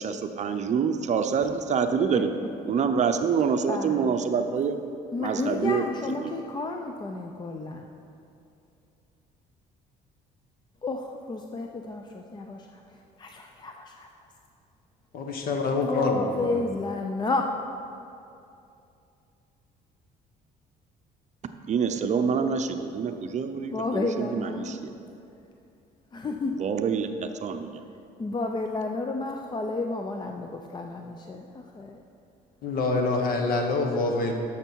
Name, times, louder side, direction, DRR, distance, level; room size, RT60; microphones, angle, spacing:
voice 1, 0.0-4.9 5.2-6.4 21.7-25.0 26.5-27.8, right 6 dB, 45° right, 7 dB, 0.6 m, -27 dB
voice 2, 3.7-4.2 5.1-7.8 10.8-14.1 15.7-17.6 23.6-24.8 26.1-26.6 28.2-32.0, left 3 dB, 25° left, 4 dB, 0.5 m, -32 dB
voice 3, 15.1-16.6 32.6-34.3, left 3 dB, 60° left, 3 dB, 1.4 m, -26 dB
12.5 x 6.6 x 4.6 m, 2.6 s
cardioid pair, 110°, 17 cm